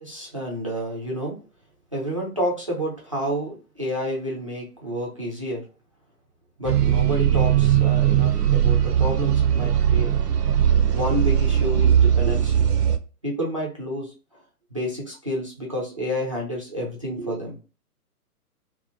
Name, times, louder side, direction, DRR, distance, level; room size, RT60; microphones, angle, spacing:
voice 1, 0.0-1.4 1.9-5.6 6.6-10.1 10.9-12.7 13.2-14.4 14.7-17.6, equal, 25° right, -4 dB, 0.4 m, -29 dB
sound 1, 6.6-13.0, right 10 dB, 85° right, 0.6 m, -19 dB
2.8 x 2.0 x 2.6 m, 0.34 s
figure-of-eight pair, 125°, 46 cm